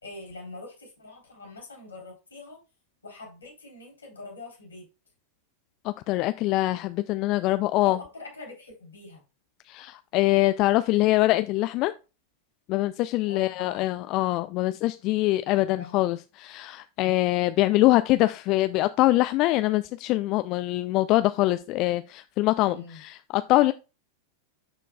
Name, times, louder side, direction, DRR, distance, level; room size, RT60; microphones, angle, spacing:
voice 1, 0.0-2.6 3.0-4.9 7.8-9.2 13.2-13.9 15.5-16.1 22.6-23.0, left 3 dB, 75° left, 3.4 m, -43 dB
voice 2, 5.8-8.0 9.7-11.9 12.7-23.7, left 17 dB, 40° left, 0.3 m, -24 dB
12.0 x 4.5 x 2.2 m
figure-of-eight pair, 90°, 0 cm